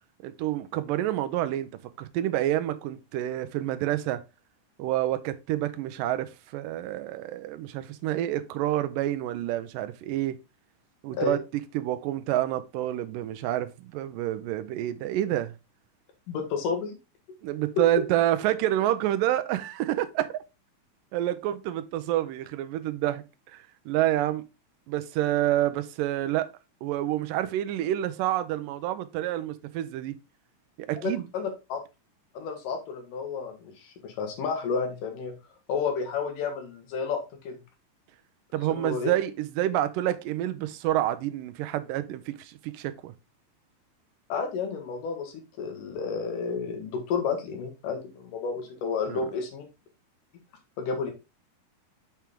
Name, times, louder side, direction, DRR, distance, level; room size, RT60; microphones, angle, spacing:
voice 1, 0.2-1.7 2.0-4.2 4.8-10.4 11.0-11.4 11.7-15.5 17.4-20.3 21.1-23.2 23.5-24.4 24.9-26.5 26.8-30.2 30.8-31.3 38.5-43.1 49.1-49.2, right 13 dB, 90° right, 2.3 m, -28 dB
voice 2, 16.3-17.0 31.0-31.8 32.3-35.3 35.7-37.2 37.4-37.6 38.6-39.1 44.3-49.6 50.8-51.1, left 5 dB, 75° left, 3.0 m, -31 dB
7.2 x 4.5 x 3.5 m
omnidirectional pair, 3.8 m